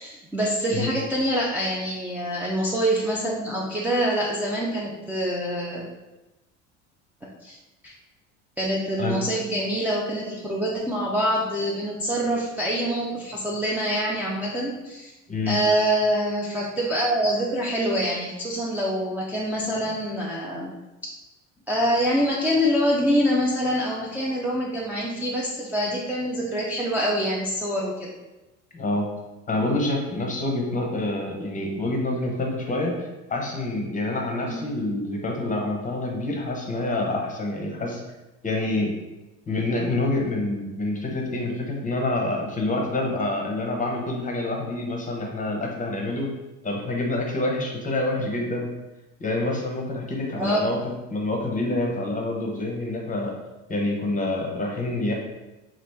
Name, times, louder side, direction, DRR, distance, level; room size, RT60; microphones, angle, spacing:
voice 1, 0.0-5.9 7.4-7.6 7.8-7.9 8.6-15.1 15.5-20.7 21.7-28.1 34.5-34.6 50.3-50.6, equal, 5° right, -5 dB, 0.4 m, -25 dB
voice 2, 28.7-29.1 29.5-32.9 33.3-38.0 38.4-38.9 39.5-46.3 46.6-48.7 49.2-50.8 51.1-53.3 53.7-55.1, left 2 dB, 20° left, 0 dB, 0.8 m, -27 dB
2.9 x 2.4 x 3.4 m, 1.0 s
hypercardioid pair, 80°, 37 cm